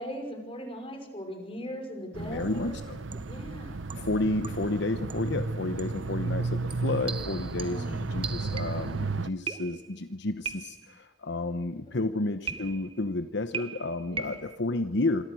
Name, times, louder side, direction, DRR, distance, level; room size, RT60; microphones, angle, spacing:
voice 1, 0.0-2.7 3.3-3.9 7.6-8.1 14.1-14.3, equal, 30° left, 5 dB, 5.7 m, -39 dB
sound 1, 2.1-9.3, right 3 dB, 85° right, 0.9 m, -33 dB
voice 2, 2.2-3.0 3.9-15.2, left 2 dB, 65° left, 10 dB, 1.0 m, -31 dB
sound 2, 2.4-2.7 3.1-3.4 3.9-4.8 5.1-5.4 5.8-6.0 6.7-9.0 9.5-10.0 10.5-11.0 12.5-13.0 13.5-14.6, right 6 dB, 30° right, 1.2 m, -39 dB
27.0 x 24.5 x 6.3 m, 0.97 s
head